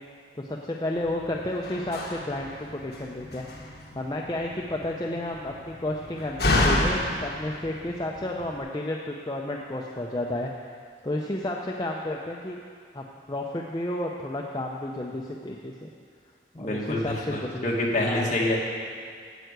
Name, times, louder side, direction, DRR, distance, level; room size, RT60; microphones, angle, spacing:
voice 1, 0.3-10.5 11.0-12.6 12.9-15.9 16.5-17.1 17.4-17.6 18.0-18.3, left 1 dB, 20° left, -1 dB, 0.6 m, -32 dB
Slam, 1.0-8.6, left 1 dB, 60° left, 1.5 m, -30 dB
voice 2, 16.6-18.6, left 1 dB, 40° left, -3 dB, 1.9 m, -27 dB
9.2 x 7.7 x 8.1 m, 2.3 s
head